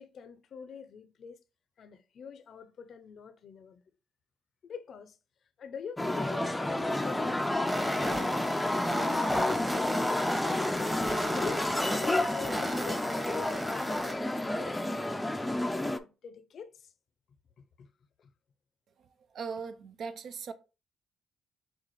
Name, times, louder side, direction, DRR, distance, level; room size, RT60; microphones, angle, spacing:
voice 1, 0.0-1.4 1.8-3.8 4.6-5.2 5.6-8.4 8.8-10.3 10.8-13.1 13.5-16.9 17.8-17.9 18.2-18.3, left 6 dB, 60° left, 0.5 m, -45 dB
sound 1, 6.0-16.0, left 1 dB, 10° left, 0.4 m, -30 dB
sound 2, 7.7-14.1, right 1 dB, 15° right, 1.0 m, -37 dB
voice 2, 19.3-20.5, right 5 dB, 65° right, 0.5 m, -39 dB
6.2 x 2.4 x 3.1 m
cardioid pair, 90°, 0 cm